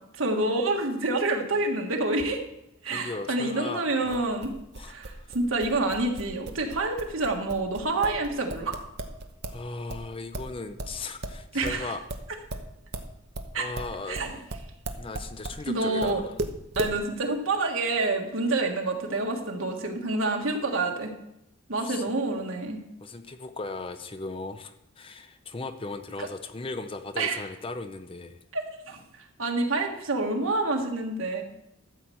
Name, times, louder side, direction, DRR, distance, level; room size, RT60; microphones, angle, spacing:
voice 1, 0.2-2.4 2.8-4.5 4.9-8.7 11.5-11.9 13.5-13.6 14.1-14.3 15.7-16.2 16.7-21.1 21.7-22.8 26.2-26.3 27.2-27.4 28.5-28.6 28.9-29.0 29.4-31.4, right 2 dB, 75° right, 2 dB, 1.7 m, -27 dB
voice 2, 2.9-4.2 4.7-5.4 9.5-12.1 13.5-14.2 15.0-16.3 21.8-22.0 23.0-28.4, left 3 dB, 25° left, 9 dB, 0.5 m, -37 dB
sound 1, 4.1-9.6 9.9-15.6 16.0-17.0, right 2 dB, 50° right, 0.9 m, -36 dB
13.0 x 4.4 x 7.8 m, 0.82 s
head